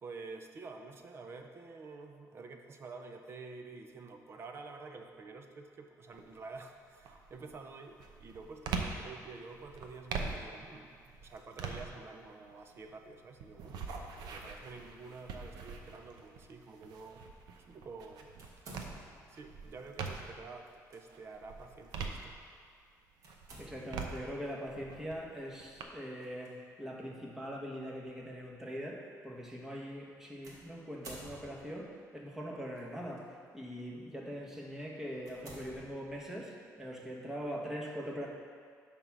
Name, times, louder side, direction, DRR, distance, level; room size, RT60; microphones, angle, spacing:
voice 1, 0.0-13.9 14.1-17.3 17.7-18.3 19.3-22.4, right 4 dB, 40° right, 5 dB, 0.6 m, -49 dB
sound 1, 6.1-6.5 7.0-20.5 21.0-22.8 23.2-25.8, right 4 dB, 85° right, 0.8 m, -43 dB
sound 2, 18.4-19.4 20.6-21.0 21.5-21.6 23.2-24.1 26.2-26.5 27.3-27.4 30.4-31.9 32.8-33.2 33.8-34.0 34.5-34.6 35.2-36.4, right 2 dB, 55° right, 1.8 m, -52 dB
voice 2, 23.6-33.3 33.5-38.3, equal, 5° right, -3 dB, 1.2 m, -42 dB
10.5 x 3.6 x 6.0 m, 2.1 s
cardioid pair, 145°, 7 cm